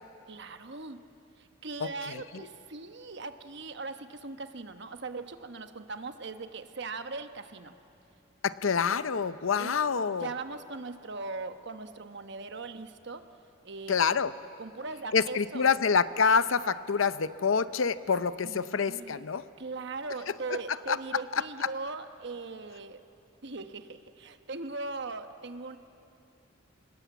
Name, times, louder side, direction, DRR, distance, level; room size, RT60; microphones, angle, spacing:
voice 1, 0.3-1.0 1.4-7.7 9.6-9.7 10.1-13.2 13.6-14.2 14.6-15.7 18.4-19.2 19.6-23.0 23.4-25.8, right 3 dB, 60° right, 8 dB, 1.1 m, -40 dB
voice 2, 8.4-10.3 13.9-14.3 15.1-19.4 20.9-21.0 21.3-21.4, left 5 dB, 85° left, 14 dB, 0.7 m, -26 dB
28.0 x 20.0 x 8.2 m, 2.8 s
head